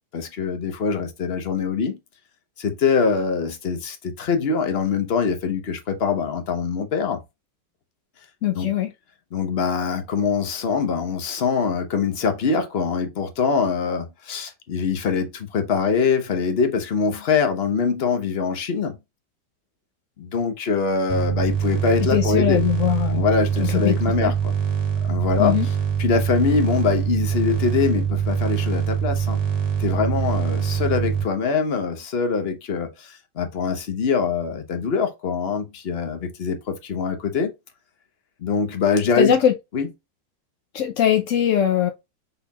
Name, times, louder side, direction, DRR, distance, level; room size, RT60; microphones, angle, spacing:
voice 1, 0.1-2.0 2.6-7.2 8.6-8.7 9.3-19.0 20.2-22.6 23.1-24.5 25.0-25.6 26.0-29.4 29.8-37.5 38.4-39.4 39.7-39.9, left 5 dB, 45° left, 0.9 m, -23 dB
voice 2, 8.4-8.9 22.1-23.2 23.6-24.3 25.4-25.7 39.2-39.5 40.7-41.9, left 10 dB, 75° left, 0.7 m, -21 dB
sound 1, 21.1-31.2, right 8 dB, 40° right, 1.6 m, -24 dB
5.4 x 4.3 x 2.3 m
omnidirectional pair, 1.9 m